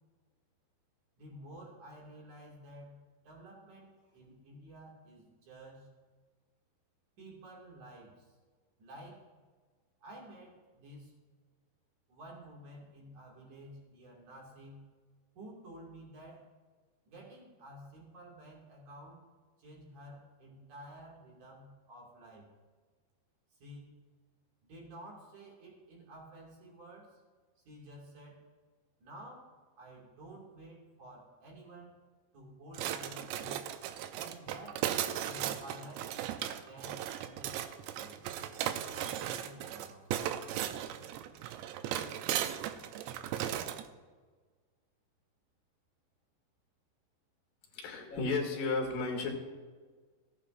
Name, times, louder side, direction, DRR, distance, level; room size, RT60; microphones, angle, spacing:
voice 1, 1.2-3.0 3.2-5.9 7.2-8.3 8.8-9.3 10.0-11.1 12.1-14.9 15.3-16.5 17.0-19.2 19.6-22.5 23.6-23.9 24.7-27.2 27.6-28.4 29.0-31.9 32.3-33.7 34.1-36.1 36.6-38.2 38.9-40.1, right 1 dB, 50° right, -2 dB, 3.3 m, -51 dB
sound 1, 32.8-43.9, right 11 dB, 85° right, 2.6 m, -37 dB
voice 2, 47.7-49.3, left 3 dB, 60° left, 1 dB, 3.0 m, -33 dB
17.0 x 8.8 x 2.6 m, 1.4 s
omnidirectional pair, 5.1 m